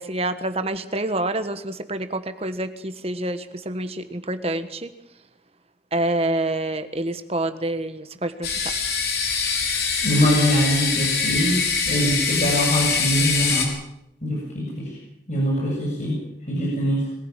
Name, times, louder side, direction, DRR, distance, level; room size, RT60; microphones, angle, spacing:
voice 1, 0.0-4.9 5.9-8.6, right 1 dB, 35° right, 10 dB, 1.5 m, -27 dB
sound 1, 8.4-13.6, left 5 dB, 60° left, 5.0 m, -23 dB
voice 2, 10.0-13.7 14.2-15.0 15.3-17.1, equal, 40° left, -3 dB, 7.7 m, -23 dB
22.5 x 15.5 x 9.0 m, 0.84 s
head